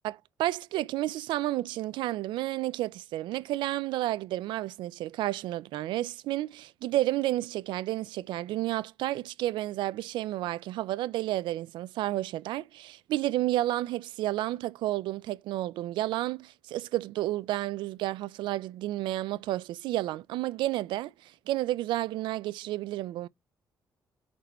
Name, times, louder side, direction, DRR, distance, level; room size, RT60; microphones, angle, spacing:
voice 1, 0.0-23.3, right 15 dB, 85° right, 0.3 m, -31 dB
4.2 x 4.2 x 5.4 m
cardioid pair, 80°, 8 cm